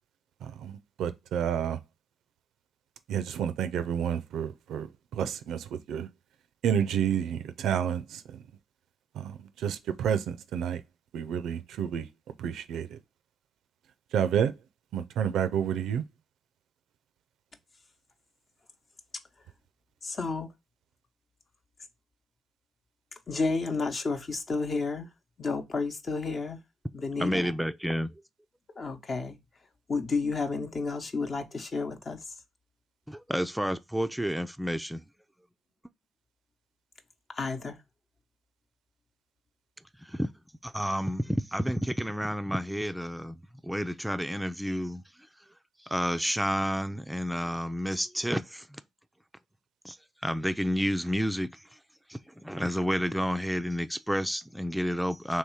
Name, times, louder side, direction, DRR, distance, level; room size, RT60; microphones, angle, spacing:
voice 1, 0.4-1.8 3.1-6.1 6.6-8.4 9.1-10.8 11.1-12.1 12.4-13.0 14.1-14.5 14.9-16.0, right 8 dB, 75° right, 0.4 m, -30 dB
voice 2, 20.0-20.5 23.3-25.1 25.4-26.6 26.9-27.5 28.8-29.4 29.9-32.2 37.4-37.8, left 4 dB, 45° left, 0.8 m, -31 dB
voice 3, 27.2-28.1 33.1-35.0 40.0-40.3 40.6-43.4 43.6-45.0 45.8-48.8 49.8-50.0 50.2-51.6 52.1-55.4, equal, 5° right, 0.4 m, -30 dB
3.2 x 2.9 x 4.6 m
hypercardioid pair, 45°, 0 cm